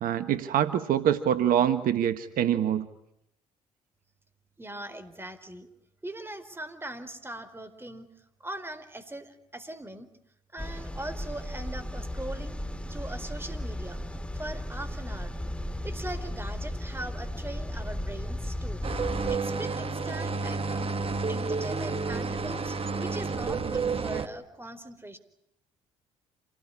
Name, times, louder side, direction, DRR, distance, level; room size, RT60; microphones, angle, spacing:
voice 1, 0.0-2.9, right 10 dB, 65° right, 10 dB, 1.4 m, -25 dB
voice 2, 4.6-5.7 6.0-8.1 8.4-10.1 10.5-12.6 12.9-14.0 14.3-15.3 15.8-18.8 19.3-20.9 21.2-25.2, right 1 dB, 15° right, 10 dB, 4.5 m, -40 dB
sound 1, 10.6-19.4, left 1 dB, 5° left, 2.4 m, -35 dB
sound 2, 18.8-24.3, right 4 dB, 40° right, 2.0 m, -30 dB
27.5 x 19.0 x 9.9 m, 0.77 s
hypercardioid pair, 55°, 16 cm